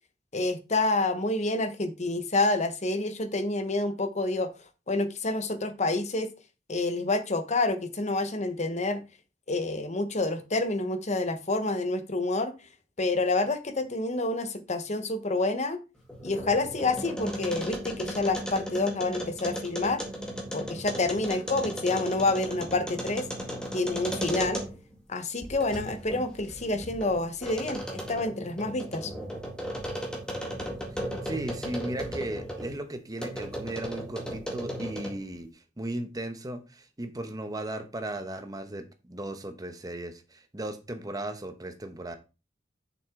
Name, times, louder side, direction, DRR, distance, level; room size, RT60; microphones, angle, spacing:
voice 1, 0.3-4.5 4.9-6.3 6.7-9.0 9.5-12.5 13.0-15.8 16.2-20.0 20.5-23.3 23.7-24.6 25.1-29.1, left 2 dB, 40° left, 1.0 m, -28 dB
sound 1, 16.0-24.9 25.4-32.7 33.2-35.3, equal, 5° left, 1.8 m, -36 dB
voice 2, 31.2-42.1, right 1 dB, 20° right, 0.9 m, -36 dB
7.1 x 6.0 x 3.7 m
head